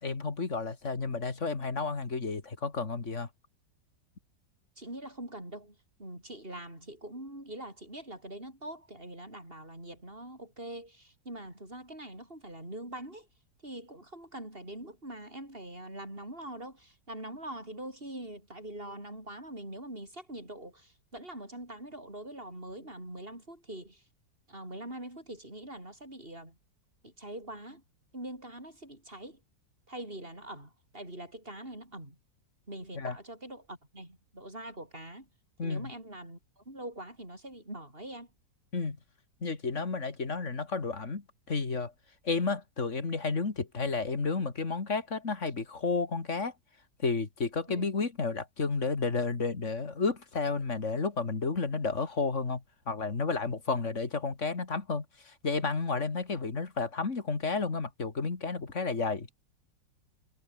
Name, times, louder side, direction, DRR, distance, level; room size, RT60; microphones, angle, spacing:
voice 1, 0.0-3.3 33.0-33.2 35.6-35.9 38.7-39.0 39.4-41.9 42.2-46.5 47.0-59.3, left 4 dB, 40° left, 2.7 m, -32 dB
voice 2, 4.8-13.3 13.6-24.0 24.5-26.6 27.0-27.8 28.1-29.4 29.9-32.2 32.7-35.3 35.6-38.3 47.7-47.9, right 1 dB, 30° right, 8.4 m, -43 dB
omnidirectional pair, 2.0 m